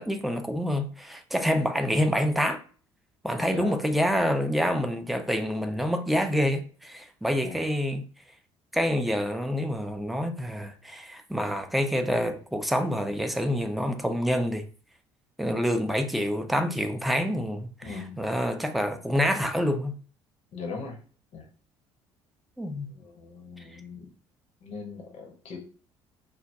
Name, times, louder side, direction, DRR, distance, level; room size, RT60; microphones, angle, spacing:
voice 1, 0.0-2.6 3.2-8.0 8.7-14.6 15.4-20.0 22.6-22.9, equal, ahead, 0.4 m, -27 dB
voice 2, 3.4-3.8 7.4-7.6 17.8-18.2 20.5-21.0 21.3-21.5 22.9-24.1 24.6-25.6, left 4 dB, 45° left, 0.7 m, -39 dB
3.4 x 2.1 x 2.6 m
figure-of-eight pair, 50°, 15 cm